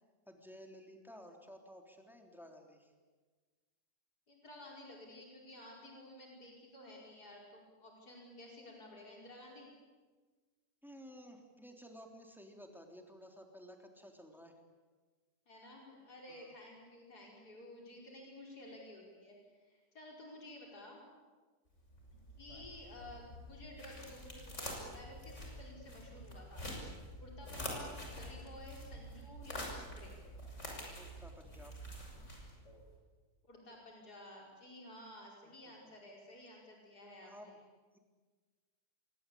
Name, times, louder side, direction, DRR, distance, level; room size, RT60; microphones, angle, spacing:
voice 1, 0.3-2.9 10.8-14.5 16.3-16.5 31.0-31.8 37.2-37.6 37.9-38.0, equal, ahead, 3 dB, 3.4 m, -54 dB
voice 2, 4.3-9.7 15.5-21.0 22.4-26.7 27.2-30.2 33.4-37.5, left 1 dB, 70° left, -1 dB, 5.7 m, -53 dB
sound 1, 21.8-32.8, equal, 45° left, 6.5 m, -47 dB
27.5 x 23.5 x 8.7 m, 1.4 s
omnidirectional pair, 1.8 m